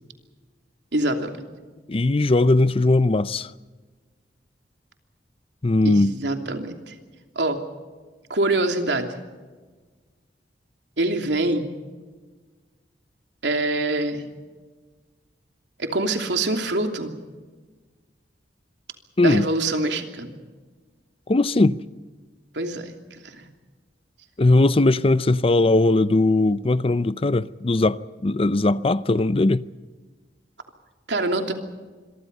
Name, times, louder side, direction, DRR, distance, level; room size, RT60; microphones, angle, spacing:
voice 1, 0.9-1.3 5.8-6.9 7.3-7.6 8.3-9.2 11.0-11.7 13.4-14.3 15.8-17.1 19.2-20.4 22.5-23.5 31.1-31.5, right 2 dB, 85° right, 3.0 m, -25 dB
voice 2, 1.9-3.5 5.6-6.2 19.2-19.5 21.3-21.8 24.4-29.6, left 2 dB, 35° left, 0.6 m, -19 dB
26.5 x 23.5 x 5.5 m
head